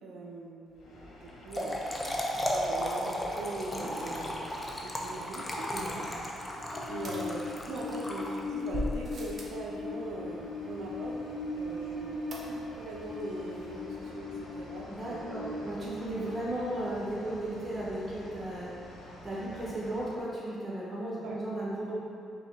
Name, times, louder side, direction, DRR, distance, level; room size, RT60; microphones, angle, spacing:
voice 1, 0.0-4.5 4.8-6.2 6.5-11.2 11.5-15.9 21.2-21.4, right 2 dB, 80° right, -2 dB, 0.4 m, -42 dB
Train, 0.8-20.3, left 3 dB, 85° left, 0.8 m, -41 dB
Trickle dribble / Fill (with liquid), 1.3-8.8, equal, 20° left, 0.5 m, -35 dB
voice 2, 3.7-4.2 5.7-6.0 14.9-18.7 19.2-21.9, right 1 dB, 20° right, -7 dB, 1.3 m, -35 dB
sound 1, 7.0-8.0 8.7-9.6 12.3-12.9 13.2-13.3 13.5-13.6, right 1 dB, 50° right, 0.7 m, -39 dB
5.0 x 2.3 x 3.3 m, 2.5 s
cardioid pair, 90°, 0 cm